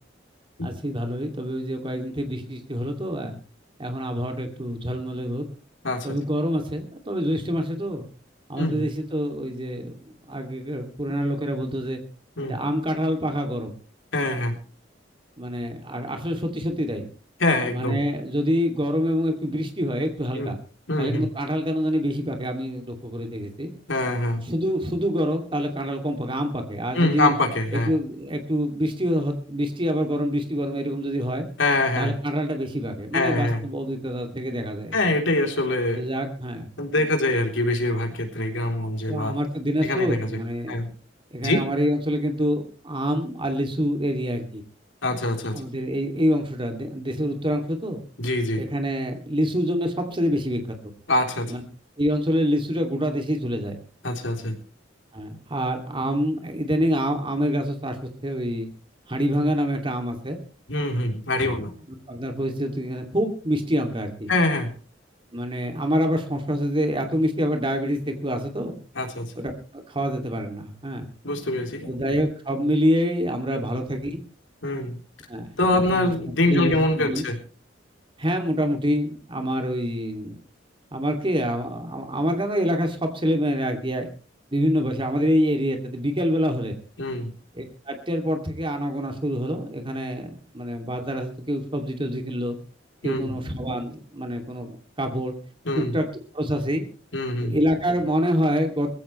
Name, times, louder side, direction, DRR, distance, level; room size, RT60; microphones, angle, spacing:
voice 1, 0.6-3.3 3.8-5.5 6.0-8.0 8.5-10.0 10.3-12.0 12.4-13.7 15.4-17.1 17.7-20.6 21.0-23.7 24.4-27.3 27.7-31.4 32.0-35.0 35.9-36.7 37.0-37.1 39.1-40.8 41.3-44.6 45.5-48.0 48.5-50.6 51.5-51.6 52.0-53.8 55.1-58.0 58.2-58.7 59.1-60.4 61.5-61.6 62.1-64.3 65.3-68.7 69.4-71.1 71.8-74.2 75.3-75.5 75.9-76.1 76.5-77.2 78.2-80.4 80.9-84.1 84.5-86.7 87.5-92.6 93.0-95.3 95.7-96.1 96.3-96.8 97.4-98.9, equal, 30° right, 4 dB, 2.7 m, -26 dB
voice 2, 5.8-6.2 8.6-8.9 12.4-12.6 14.1-14.6 17.4-18.0 20.3-20.5 20.9-21.3 23.9-24.5 26.9-27.9 31.6-32.2 33.1-33.6 34.9-36.0 36.8-39.4 39.8-40.3 40.7-40.9 41.4-41.6 45.0-45.6 48.2-48.6 51.1-51.5 54.0-54.6 60.7-61.7 64.3-64.7 69.0-69.3 71.2-71.9 74.6-75.0 75.6-77.4 87.0-87.3 93.0-93.3 95.7-96.0 97.1-97.6, left 2 dB, 80° left, 3 dB, 3.7 m, -24 dB
20.5 x 15.5 x 3.3 m, 0.37 s
head